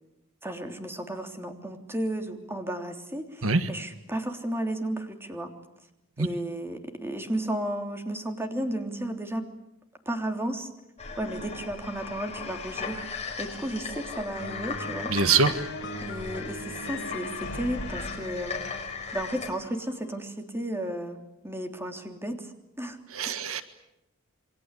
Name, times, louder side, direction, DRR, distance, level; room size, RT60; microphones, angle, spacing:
voice 1, 0.4-5.5 6.2-9.4 10.0-10.7 11.2-13.0 13.4-15.1 16.0-18.6 19.1-21.2 21.4-23.0 23.2-23.5, right 1 dB, 10° right, 5 dB, 3.3 m, -33 dB
sound 1, 11.0-19.5, left 5 dB, 30° left, 5.2 m, -37 dB
sound 2, 14.4-20.2, left 2 dB, 60° left, 5.3 m, -39 dB
voice 2, 15.1-15.5 23.1-23.6, right 4 dB, 75° right, 10 dB, 1.6 m, -23 dB
28.5 x 24.0 x 8.4 m, 0.88 s
head